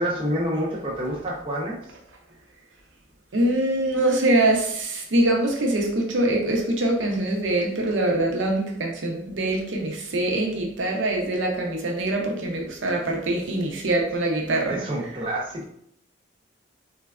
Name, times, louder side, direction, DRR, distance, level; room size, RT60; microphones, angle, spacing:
voice 1, 0.0-1.8 14.7-15.7, equal, 25° right, -3 dB, 0.4 m, -28 dB
voice 2, 3.3-14.8, right 1 dB, 75° right, 0 dB, 0.6 m, -24 dB
3.1 x 2.2 x 2.3 m, 0.69 s
head